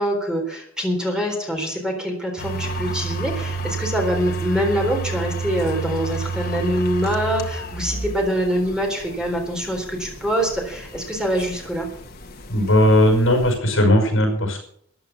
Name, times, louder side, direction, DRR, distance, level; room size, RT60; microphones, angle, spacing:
voice 1, 0.0-11.9, equal, 5° right, 1 dB, 3.9 m, -24 dB
sound 1, 2.4-13.6, right 3 dB, 50° left, 1.8 m, -31 dB
voice 2, 12.5-14.6, left 1 dB, 70° left, 3 dB, 5.6 m, -17 dB
14.0 x 10.5 x 7.1 m, 0.67 s
head